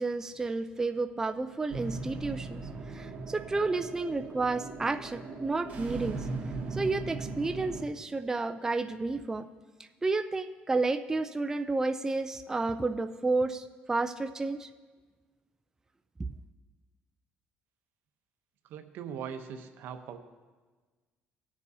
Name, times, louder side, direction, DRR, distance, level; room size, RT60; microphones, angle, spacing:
voice 1, 0.0-6.3 6.7-9.5 10.0-14.7, right 3 dB, 15° right, 7 dB, 0.4 m, -31 dB
sound 1, 1.7-7.8, right 3 dB, 45° right, 2.1 m, -38 dB
voice 2, 18.7-20.2, right 7 dB, 75° right, 7 dB, 0.9 m, -40 dB
19.5 x 7.2 x 2.8 m, 1.4 s
cardioid pair, 105°, 4 cm